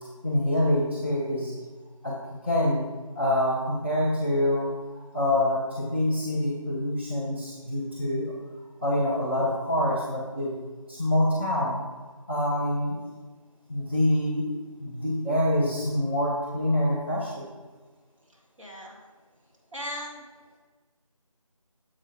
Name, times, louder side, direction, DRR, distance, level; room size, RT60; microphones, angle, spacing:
voice 1, 0.2-1.5 2.0-2.9 3.1-8.3 8.8-10.6 10.9-11.8 12.3-13.0 13.7-14.5 14.8-17.5, left 1 dB, 20° right, -7 dB, 0.7 m, -26 dB
voice 2, 18.6-19.0 19.7-20.2, equal, 60° right, -2 dB, 2.1 m, -37 dB
7.3 x 4.9 x 4.9 m, 1.4 s
figure-of-eight pair, 170°, 18 cm